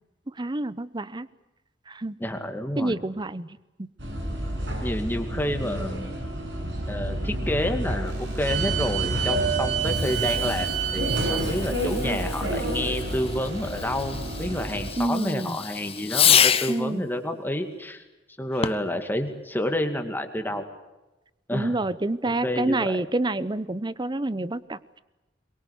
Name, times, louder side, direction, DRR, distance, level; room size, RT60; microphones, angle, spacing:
voice 1, 0.3-1.3 1.9-2.2 2.8-3.9 15.0-15.6 16.7-17.1 21.5-25.0, right 2 dB, 25° right, 17 dB, 0.8 m, -28 dB
voice 2, 2.2-3.0 4.8-6.1 6.9-18.0 18.4-20.7 21.5-21.8 22.2-22.9, left 1 dB, 10° left, 6 dB, 2.3 m, -29 dB
sound 1, 4.0-14.9, right 2 dB, 80° right, 7.0 m, -28 dB
sound 2, 8.0-10.7 11.8-14.6, equal, 60° right, 5.9 m, -40 dB
Fireworks, 9.8-16.9 18.5-19.0, left 8 dB, 35° left, 0.9 m, -28 dB
23.0 x 22.5 x 8.3 m, 1.0 s
head